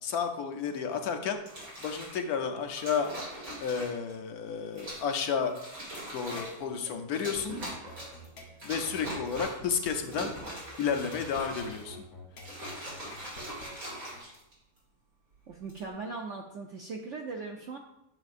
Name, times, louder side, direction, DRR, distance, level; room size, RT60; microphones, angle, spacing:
voice 1, 0.0-1.4 1.8-3.1 3.6-5.5 6.1-7.6 8.6-10.3 10.8-12.0, left 6 dB, 70° left, 5 dB, 1.1 m, -31 dB
sound 1, 1.4-2.2 2.8-4.1 4.8-5.1 5.5-6.6 7.1-8.3 8.6-9.7 10.0-12.0 12.4-14.8 15.5-15.9, right 1 dB, 55° right, 2.9 m, -41 dB
sound 2, 6.2-14.2, left 1 dB, 50° left, 1.3 m, -49 dB
voice 2, 15.5-17.8, right 4 dB, 70° right, 2 dB, 0.7 m, -39 dB
7.9 x 6.5 x 2.5 m, 0.83 s
omnidirectional pair, 1.8 m